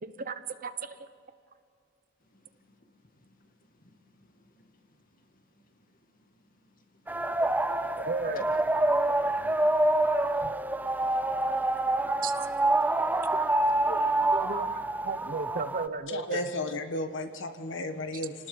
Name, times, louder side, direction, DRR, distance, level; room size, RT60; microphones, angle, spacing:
voice 1, 0.0-1.1 8.0-8.4 9.1-9.5 10.4-10.6 12.2-12.5 13.9-16.4, right 4 dB, 40° right, 1.0 m, -36 dB
voice 2, 3.1-3.5 3.8-4.7 5.3-5.4 6.8-7.0 7.5-7.9 8.4-8.5 8.9-9.1 9.6-9.8 11.0-12.2 13.2-13.3, left 3 dB, 45° left, 2.2 m, -53 dB
sound 1, 7.1-15.9, right 2 dB, 10° right, 0.5 m, -27 dB
voice 3, 16.1-18.3, left 2 dB, 60° left, 1.6 m, -33 dB
28.5 x 19.0 x 7.2 m
head